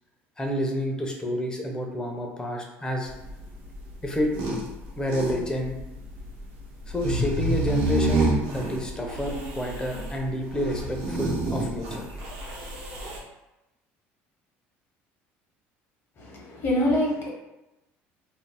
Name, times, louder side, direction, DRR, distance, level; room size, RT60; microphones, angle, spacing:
voice 1, 0.4-3.1 4.0-4.3 5.0-5.7 6.9-12.1, equal, 15° left, 1 dB, 0.6 m, -29 dB
sound 1, 3.1-13.2, right 1 dB, 75° right, 0.8 m, -29 dB
voice 2, 16.2-17.3, left 1 dB, 50° left, -1 dB, 0.9 m, -25 dB
2.5 x 2.0 x 3.3 m, 0.96 s
supercardioid pair, 95°, 6 cm